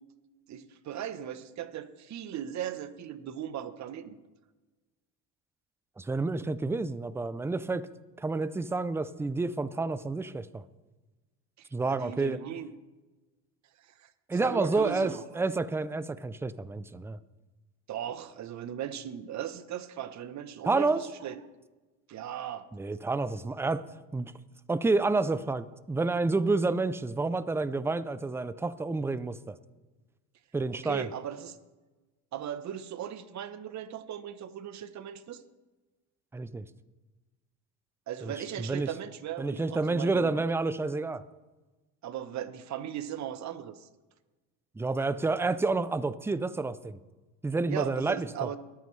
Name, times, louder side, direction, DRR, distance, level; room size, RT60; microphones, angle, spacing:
voice 1, 0.5-4.2 11.6-12.7 14.0-15.4 17.9-21.4 22.1-22.7 30.7-31.6 32.3-35.4 38.1-40.4 42.0-43.9 47.7-48.6, right 10 dB, 45° right, 12 dB, 1.0 m, -38 dB
voice 2, 6.0-7.9 8.2-10.6 11.7-12.4 14.3-17.2 20.6-21.0 22.7-23.8 24.1-24.3 24.7-29.6 30.5-31.1 36.3-36.7 38.2-38.3 38.6-38.9 39.4-41.2 44.8-47.0 47.4-48.5, right 3 dB, 5° right, 15 dB, 0.4 m, -29 dB
22.0 x 9.3 x 3.3 m, 1.2 s
supercardioid pair, 105°, 40 cm